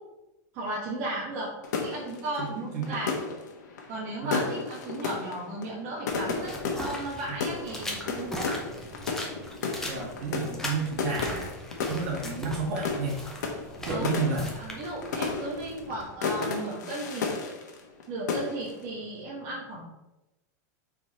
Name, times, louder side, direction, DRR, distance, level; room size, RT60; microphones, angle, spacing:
voice 1, 0.5-1.5 1.8-3.1 3.9-8.5 13.8-14.1 14.5-17.3 18.1-19.8, right 1 dB, 30° right, -7 dB, 1.3 m, -35 dB
sound 1, 1.6-18.0 18.3-18.8, left 4 dB, 85° left, 1.2 m, -33 dB
voice 2, 2.4-3.1 4.2-4.6 7.3-7.4 9.8-11.6 11.9-13.2 13.8-14.5, right 4 dB, 50° right, -2 dB, 2.0 m, -31 dB
sound 2, 6.1-16.1, left 1 dB, 5° left, 0.6 m, -40 dB
5.2 x 4.6 x 4.2 m, 0.99 s
supercardioid pair, 180°, 9 cm